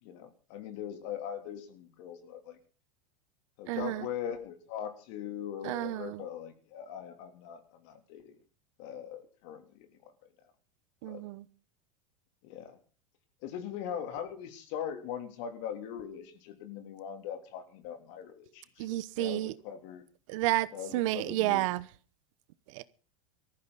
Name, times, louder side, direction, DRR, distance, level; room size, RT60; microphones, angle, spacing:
voice 1, 0.0-2.6 3.6-8.3 8.8-10.1 11.0-11.2 12.4-12.8 13.4-20.0 20.7-21.7, left 9 dB, 60° left, 3.3 m, -41 dB
voice 2, 3.7-4.1 5.6-6.2 11.0-11.4 18.8-19.5 20.3-20.7 20.9-21.8 22.7-22.8, right 17 dB, 65° right, 1.0 m, -31 dB
19.0 x 14.0 x 4.1 m
supercardioid pair, 140°, 17 cm